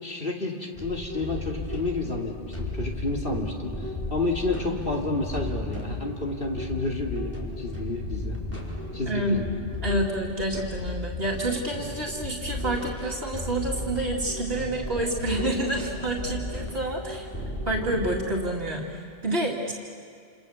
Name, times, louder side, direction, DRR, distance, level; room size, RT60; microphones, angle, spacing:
voice 1, 0.0-8.4 8.9-9.4, left 2 dB, 60° left, 0 dB, 2.9 m, -30 dB
sound 1, 0.8-18.4, left 2 dB, 15° left, 4.7 m, -34 dB
voice 2, 9.1-9.4 9.8-17.3 17.7-19.7, right 1 dB, 65° right, -2 dB, 2.5 m, -28 dB
28.5 x 28.0 x 7.0 m, 2.3 s
omnidirectional pair, 1.1 m